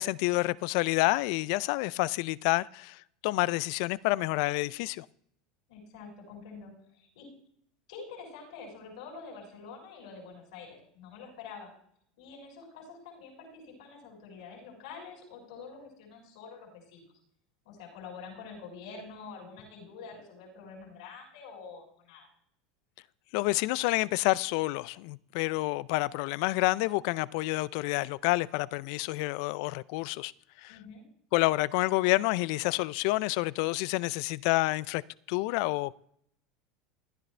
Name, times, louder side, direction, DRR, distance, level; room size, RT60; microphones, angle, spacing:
voice 1, 0.0-5.1 23.3-30.3 30.6-30.7 31.3-35.0 35.3-36.0, left 21 dB, 65° left, 0.4 m, -28 dB
voice 2, 5.7-7.3 7.9-11.7 12.2-17.0 17.6-22.3 30.7-31.0, left 5 dB, 80° left, 6.3 m, -47 dB
16.5 x 11.0 x 3.3 m
supercardioid pair, 115°, 4 cm